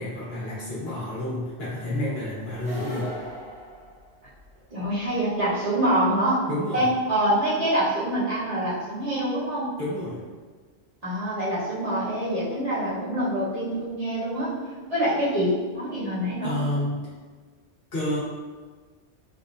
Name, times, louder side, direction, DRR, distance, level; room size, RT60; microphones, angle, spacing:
voice 1, 0.0-3.1 6.5-6.9 9.8-10.2 16.4-17.1 17.9-18.2, left 1 dB, 60° left, -8 dB, 1.3 m, -29 dB
sound 1, 2.5-4.6, right 1 dB, 60° right, 1.5 m, -37 dB
voice 2, 4.7-6.4 6.7-9.7 11.0-14.5 14.9-16.6, right 1 dB, 35° right, -11 dB, 1.0 m, -25 dB
3.4 x 2.6 x 2.4 m, 1.4 s
omnidirectional pair, 1.2 m